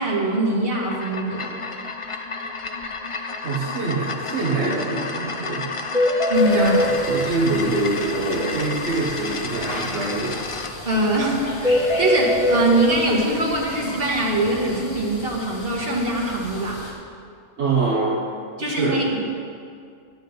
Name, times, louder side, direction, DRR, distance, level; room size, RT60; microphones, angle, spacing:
voice 1, 0.0-1.5 6.3-6.7 10.8-16.8 18.6-19.2, right 1 dB, 55° right, -3 dB, 2.2 m, -22 dB
sound 1, 0.6-10.7, left 4 dB, 35° left, 0.5 m, -32 dB
voice 2, 3.4-5.7 6.5-6.7 7.1-10.4 17.6-18.2 18.6-19.0, right 3 dB, 75° right, -4 dB, 1.5 m, -24 dB
sound 2, 4.7-4.8 5.1-5.2 5.5-5.6 5.9-6.9 11.6-12.6, left 1 dB, 5° right, 1.3 m, -20 dB
sound 3, 6.3-16.9, left 2 dB, 60° left, 1.7 m, -37 dB
11.0 x 9.4 x 5.3 m, 2.3 s
omnidirectional pair, 1.2 m